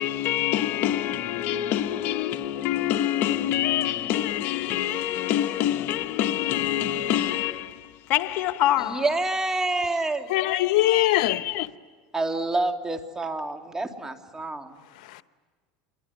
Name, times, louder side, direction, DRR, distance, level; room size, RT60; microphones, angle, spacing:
voice 1, 0.0-9.0 10.4-11.7, left 12 dB, 55° left, 1.1 m, -26 dB
voice 2, 8.8-10.3 12.1-14.8, right 2 dB, 15° right, 2.6 m, -28 dB
voice 3, 10.3-11.5 14.9-15.2, left 16 dB, 80° left, 0.9 m, -23 dB
28.0 x 22.5 x 9.5 m
supercardioid pair, 115°, 4 cm